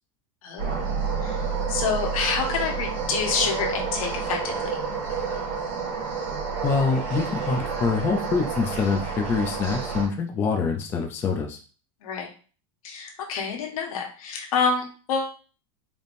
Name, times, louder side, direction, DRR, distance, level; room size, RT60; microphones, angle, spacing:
sound 1, 0.6-10.1, right 5 dB, 40° right, 1.9 m, -29 dB
voice 1, 1.7-4.7 12.0-12.3 12.8-15.3, left 5 dB, 90° left, 1 dB, 1.3 m, -27 dB
voice 2, 6.6-11.6, left 5 dB, 15° left, 2 dB, 0.3 m, -25 dB
4.2 x 3.4 x 2.6 m, 0.38 s
supercardioid pair, 175°, 18 cm